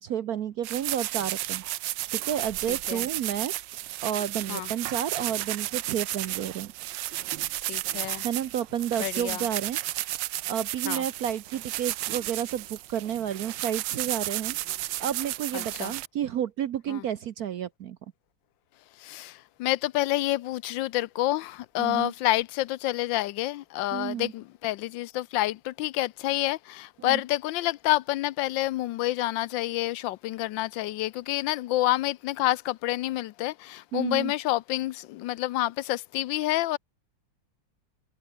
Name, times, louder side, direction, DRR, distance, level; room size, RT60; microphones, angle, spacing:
voice 1, 0.0-1.6 2.1-3.5 4.0-6.7 8.2-10.2 10.5-14.6 15.0-18.0 21.8-22.1 23.9-24.3 27.0-27.2 33.9-34.3, right 9 dB, 60° right, 1.2 m, -31 dB
sound 1, 0.6-16.1, right 15 dB, 80° right, 1.3 m, -33 dB
voice 2, 2.7-3.1 4.5-4.7 7.7-8.3 9.0-9.4 10.8-11.0 15.5-15.9 16.9-17.0 19.0-36.8, left 16 dB, 85° left, 1.4 m, -28 dB
omnidirectional pair, 2.0 m